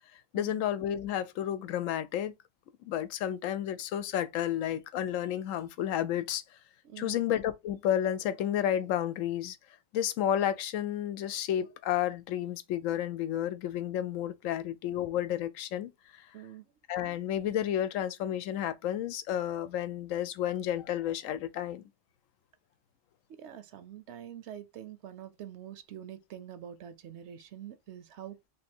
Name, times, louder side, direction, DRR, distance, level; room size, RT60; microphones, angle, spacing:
voice 1, 0.3-2.3 2.8-6.4 7.0-9.6 9.9-16.2 16.9-21.8, left 11 dB, 90° left, 1.0 m, -31 dB
voice 2, 6.8-7.2 16.3-16.7 23.3-28.5, right 10 dB, 65° right, 0.8 m, -45 dB
3.5 x 2.7 x 4.2 m
omnidirectional pair, 1.3 m